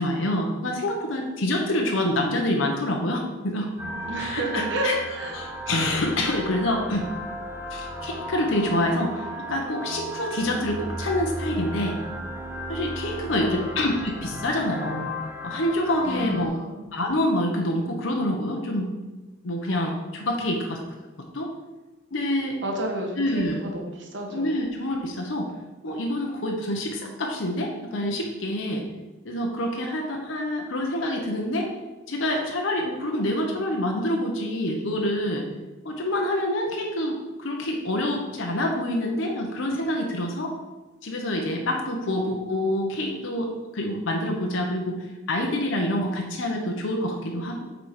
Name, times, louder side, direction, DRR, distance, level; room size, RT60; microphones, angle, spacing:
voice 1, 0.0-3.7 4.2-5.0 5.3-7.1 7.7-12.0 12.7-15.1 15.4-16.5 16.9-18.9 19.4-20.8 21.3-21.5 22.1-22.6 23.2-23.6 24.3-25.5 25.8-28.8 29.2-31.7 32.1-35.5 35.8-40.6 41.0-47.6, left 1 dB, 85° left, 1 dB, 1.0 m, -27 dB
sound 1, 3.8-16.5, equal, 15° right, 0.8 m, -35 dB
voice 2, 4.1-5.4 13.3-13.7 16.0-16.8 22.6-24.6 41.9-42.2, right 1 dB, 65° right, 1 dB, 1.4 m, -31 dB
7.5 x 4.1 x 5.0 m, 1.1 s
head